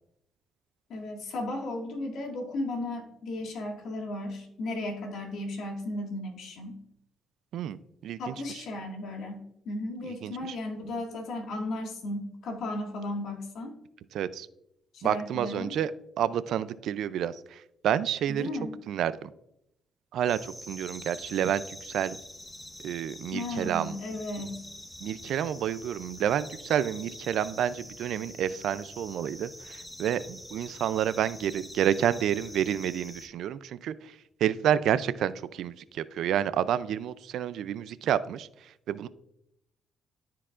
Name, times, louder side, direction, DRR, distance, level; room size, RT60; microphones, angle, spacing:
voice 1, 0.9-6.8 8.2-13.8 14.9-15.8 18.3-18.7 23.3-24.6 28.5-28.6, left 2 dB, 75° left, 1 dB, 1.8 m, -35 dB
voice 2, 7.5-8.3 10.1-10.6 14.1-14.5 15.0-15.9 16.2-18.5 18.9-19.3 20.1-22.2 22.8-23.9 25.0-34.2 34.4-39.1, right 10 dB, 75° right, 16 dB, 0.3 m, -29 dB
sound 1, 20.3-33.3, left 1 dB, 10° left, 1.1 m, -45 dB
13.5 x 4.6 x 2.4 m, 0.80 s
cardioid pair, 90°, 0 cm